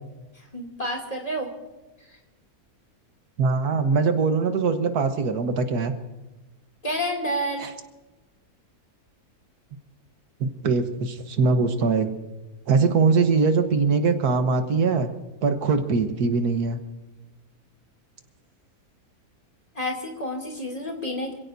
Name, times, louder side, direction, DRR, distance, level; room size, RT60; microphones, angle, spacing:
voice 1, 0.5-1.5 6.8-7.7 12.8-12.9 19.7-21.3, equal, 25° left, 1 dB, 2.7 m, -29 dB
voice 2, 3.4-5.9 7.6-7.7 10.4-12.1 12.7-15.1 15.4-16.8, right 4 dB, 90° right, 7 dB, 1.8 m, -22 dB
27.0 x 16.5 x 2.7 m, 1.1 s
omnidirectional pair, 1.6 m